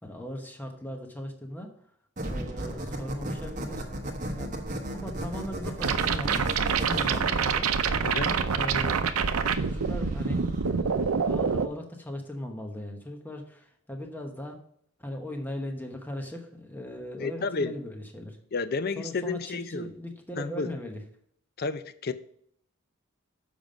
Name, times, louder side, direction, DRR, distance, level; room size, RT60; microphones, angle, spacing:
voice 1, 0.0-1.7 2.3-3.8 4.3-6.4 6.8-9.2 9.6-10.9 11.2-14.6 15.0-18.4 19.0-21.0, equal, 10° left, 3 dB, 1.0 m, -38 dB
sound 1, 2.2-10.7, right 1 dB, 35° right, 1.1 m, -36 dB
sound 2, 5.8-11.7, right 5 dB, 80° right, 0.6 m, -26 dB
voice 2, 17.2-17.7 18.5-19.9 20.4-20.7 21.6-22.1, left 4 dB, 45° left, 13 dB, 0.5 m, -31 dB
7.2 x 5.3 x 5.1 m, 0.66 s
head